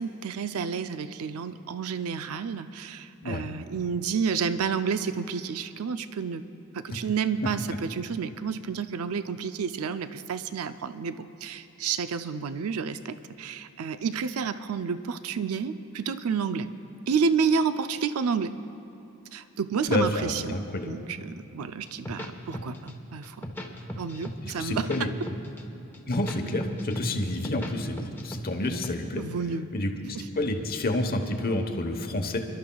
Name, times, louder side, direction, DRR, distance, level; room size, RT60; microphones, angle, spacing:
voice 1, 0.0-6.4 6.7-16.7 17.1-18.5 19.3-23.4 24.0-25.1 29.2-29.7 30.2-30.3, right 6 dB, 70° right, 11 dB, 0.5 m, -30 dB
voice 2, 19.9-21.0 24.4-25.1 26.1-29.2 29.7-32.4, left 1 dB, 45° left, 5 dB, 1.1 m, -29 dB
sound 1, 21.9-22.9 23.2-24.4 24.6-25.6 25.9-27.7 28.0-28.9, equal, 10° left, 1.0 m, -36 dB
29.0 x 12.5 x 2.3 m, 3.0 s
head